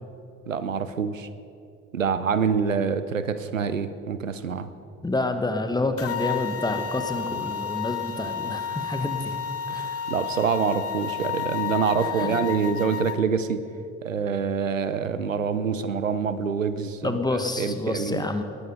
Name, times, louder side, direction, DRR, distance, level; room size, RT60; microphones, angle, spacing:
voice 1, 0.5-1.3 1.9-4.7 9.7-13.6 14.0-18.3, right 6 dB, 90° right, 12 dB, 0.6 m, -26 dB
voice 2, 5.0-9.3 9.7-10.0 12.0-12.4 17.0-18.4, left 2 dB, 10° left, 8 dB, 1.4 m, -28 dB
sound 1, 6.0-13.2, left 8 dB, 40° left, 0.9 m, -31 dB
18.5 x 10.0 x 5.5 m, 2.5 s
figure-of-eight pair, 50°, 38 cm